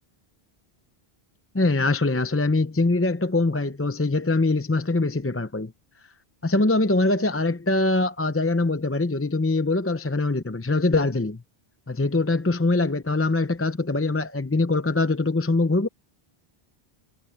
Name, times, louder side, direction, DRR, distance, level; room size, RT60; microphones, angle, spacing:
voice 1, 1.5-5.7 6.4-11.4 11.9-15.9, left 2 dB, 15° left, 0.5 m, -23 dB
omnidirectional pair, 1.0 m